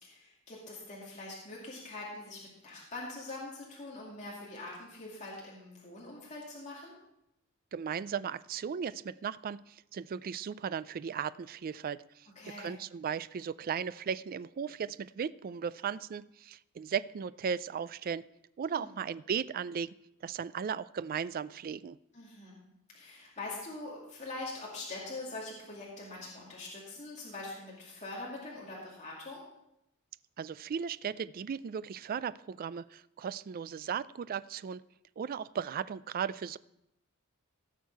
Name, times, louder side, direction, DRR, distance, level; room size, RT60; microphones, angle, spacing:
voice 1, 0.0-6.9 12.4-12.8 18.7-18.9 22.1-22.6 22.9-29.4, left 2 dB, 35° left, -5 dB, 2.4 m, -43 dB
voice 2, 7.7-12.3 12.6-18.2 18.6-19.9 20.2-22.0 30.4-34.8 35.2-36.6, right 7 dB, 40° right, 17 dB, 0.3 m, -36 dB
16.5 x 6.5 x 4.6 m, 0.84 s
head